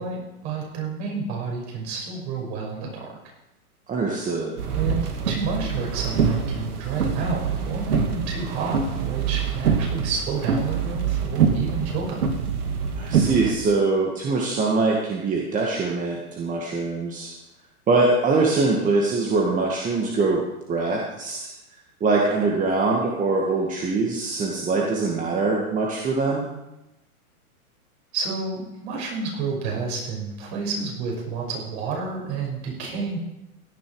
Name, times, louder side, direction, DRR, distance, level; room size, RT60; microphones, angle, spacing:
voice 1, 0.0-3.2 4.7-12.3 28.1-33.2, right 4 dB, 45° right, 0 dB, 6.2 m, -30 dB
voice 2, 3.9-4.5 13.0-17.3 17.9-20.4 20.7-21.5 22.0-26.5, right 3 dB, 20° right, -1 dB, 1.8 m, -23 dB
sound 1, 4.6-13.5, right 6 dB, 80° right, 2.6 m, -25 dB
16.5 x 10.5 x 4.8 m, 0.95 s
hypercardioid pair, 135°, 44 cm